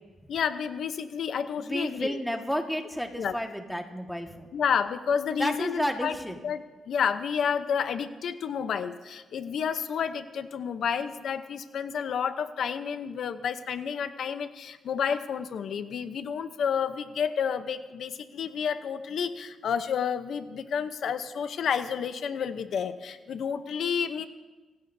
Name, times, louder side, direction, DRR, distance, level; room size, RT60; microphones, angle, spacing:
voice 1, 0.3-2.2 3.2-3.4 4.5-6.2 6.4-24.3, left 7 dB, 65° left, 10 dB, 0.8 m, -30 dB
voice 2, 1.6-4.5 5.4-6.3, equal, ahead, 3 dB, 1.6 m, -31 dB
25.5 x 16.5 x 2.7 m, 1.2 s
cardioid pair, 120°, 0 cm